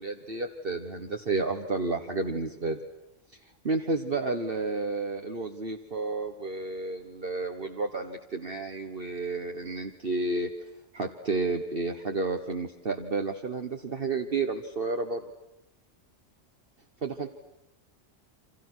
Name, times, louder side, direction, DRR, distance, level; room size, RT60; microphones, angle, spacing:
voice 1, 0.0-2.8 3.6-10.5 10.9-15.2 17.0-17.3, right 3 dB, 50° right, 4 dB, 1.6 m, -31 dB
29.0 x 26.0 x 6.3 m, 0.88 s
omnidirectional pair, 1.2 m